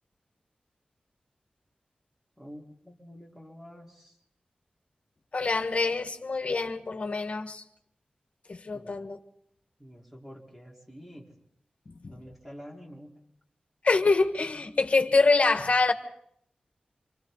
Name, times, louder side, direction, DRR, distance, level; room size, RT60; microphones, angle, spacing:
voice 1, 2.4-4.2 8.7-9.0 9.8-11.3 12.1-13.3, equal, 10° right, 4.6 m, -48 dB
voice 2, 5.3-7.6 8.5-9.2 11.9-12.2 13.8-15.9, left 3 dB, 50° left, 1.7 m, -25 dB
29.0 x 26.5 x 4.1 m
wide cardioid pair, 105°, 3 cm